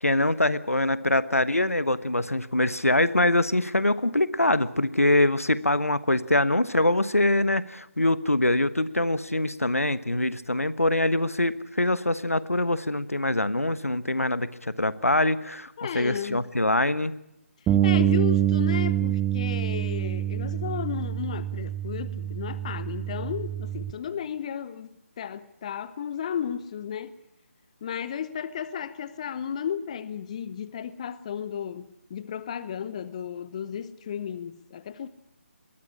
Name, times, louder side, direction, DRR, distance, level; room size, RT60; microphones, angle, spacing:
voice 1, 0.0-17.1, left 1 dB, 90° left, 1.1 m, -24 dB
voice 2, 15.8-16.4 17.6-27.2 27.8-35.1, left 8 dB, 30° left, 0.8 m, -34 dB
Bass guitar, 17.7-23.9, right 12 dB, 10° right, 0.7 m, -26 dB
21.0 x 14.5 x 9.9 m
figure-of-eight pair, 150°, 8 cm